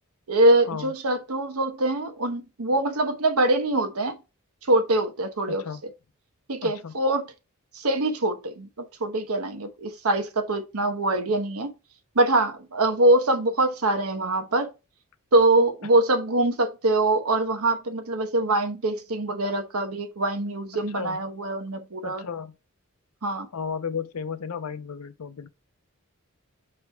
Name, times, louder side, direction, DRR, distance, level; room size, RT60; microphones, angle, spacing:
voice 1, 0.3-4.2 4.7-5.6 6.5-7.3 7.7-8.7 9.0-11.7 12.1-14.7 15.3-22.2 23.2-23.5, right 2 dB, 80° right, 1.0 m, -23 dB
voice 2, 5.5-5.8 6.6-6.9 20.9-21.2 22.0-22.5 23.5-25.5, left 6 dB, 90° left, 0.6 m, -33 dB
5.3 x 4.5 x 2.2 m
head